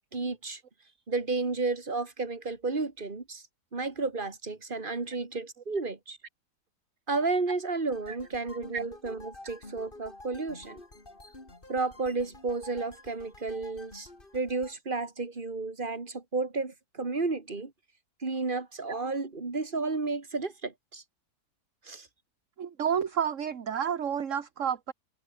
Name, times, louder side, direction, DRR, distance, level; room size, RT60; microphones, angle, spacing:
voice 1, 0.1-0.6 1.1-3.4 3.7-6.2 7.1-10.8 11.7-14.1 14.3-17.7 18.2-21.0 21.8-22.1, right 3 dB, 30° right, 2.6 m, -32 dB
sound 1, 7.9-14.8, left 2 dB, 30° left, 3.9 m, -50 dB
voice 2, 22.6-24.9, right 8 dB, 50° right, 1.6 m, -30 dB
omnidirectional pair, 1.8 m